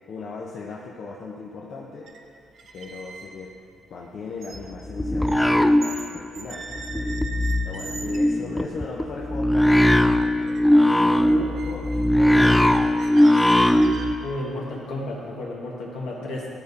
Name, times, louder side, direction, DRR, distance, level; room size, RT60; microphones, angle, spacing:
voice 1, 0.0-2.1 2.7-3.5 3.9-10.6 10.9-12.8 16.2-16.3, left 4 dB, 65° left, -3 dB, 0.8 m, -38 dB
sound 1, 2.0-2.2 2.5-6.1 6.3-8.3 8.9-9.0 9.3-9.7 10.0-10.6 10.9-14.3, right 4 dB, 70° right, 0.9 m, -41 dB
sound 2, 4.6-6.4 6.7-14.2, left 1 dB, 5° left, 0.3 m, -20 dB
voice 2, 12.3-12.7 14.2-16.5, left 1 dB, 85° left, -3 dB, 1.7 m, -32 dB
12.5 x 5.2 x 4.2 m, 2.5 s
cardioid pair, 90°, 0 cm